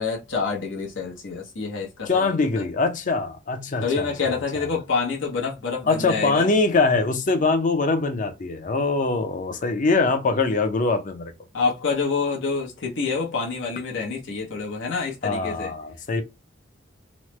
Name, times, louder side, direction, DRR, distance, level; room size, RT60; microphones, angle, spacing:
voice 1, 0.0-2.6 3.8-6.5 11.5-15.7, left 4 dB, 85° left, 0.9 m, -27 dB
voice 2, 2.1-4.1 5.9-11.3 15.2-16.2, left 3 dB, 45° left, 0.5 m, -23 dB
3.1 x 2.0 x 3.1 m
head